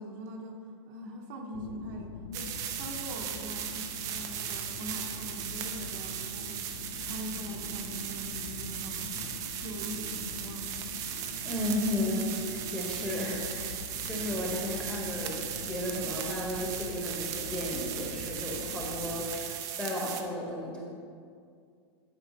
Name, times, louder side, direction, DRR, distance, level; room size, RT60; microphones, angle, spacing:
voice 1, 0.0-9.4 9.6-10.7, right 1 dB, 40° right, 1 dB, 0.8 m, -42 dB
sound 1, 1.5-19.3, left 6 dB, 85° left, 0.6 m, -44 dB
sound 2, 2.3-20.2, right 9 dB, 20° right, 0.4 m, -37 dB
voice 2, 11.4-13.8 14.0-20.8, left 1 dB, 5° left, -4 dB, 1.0 m, -34 dB
11.0 x 4.8 x 3.8 m, 2.2 s
supercardioid pair, 170°, 15 cm